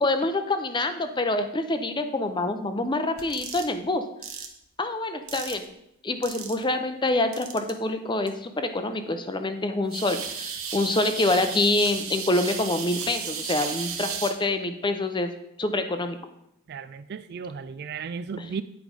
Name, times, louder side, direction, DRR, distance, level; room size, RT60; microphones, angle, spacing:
voice 1, 0.0-4.0 4.8-5.7 6.0-15.3 15.6-16.2, left 2 dB, 20° left, 8 dB, 0.6 m, -26 dB
sound 1, 3.2-3.7 4.2-4.5 5.3-5.6 6.2-6.6 7.3-7.7 8.3-8.4 9.9-14.3, right 7 dB, 75° right, 1.1 m, -34 dB
voice 2, 16.7-18.6, right 5 dB, 50° right, 13 dB, 0.3 m, -35 dB
9.2 x 4.8 x 5.2 m, 0.80 s
head